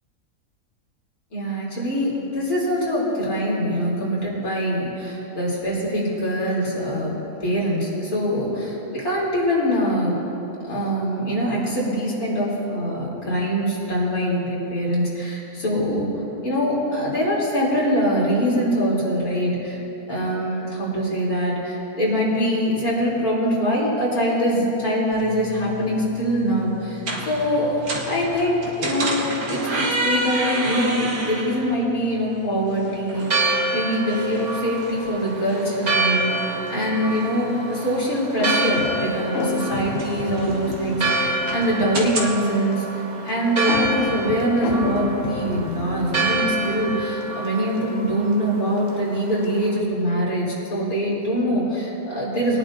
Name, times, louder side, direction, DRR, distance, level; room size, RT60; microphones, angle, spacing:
voice 1, 1.3-7.1 7.4-10.1 10.7-16.1 16.4-19.8 20.1-52.6, equal, 75° left, -6 dB, 3.7 m, -23 dB
sound 1, 25.1-42.3, right 2 dB, 80° right, 1.8 m, -32 dB
Church bell, 33.1-49.8, right 3 dB, 30° right, 1.1 m, -28 dB
sound 2, 38.4-42.1 43.7-47.3, left 6 dB, 60° left, 0.7 m, -31 dB
22.0 x 10.5 x 2.6 m, 2.9 s
omnidirectional pair, 1.6 m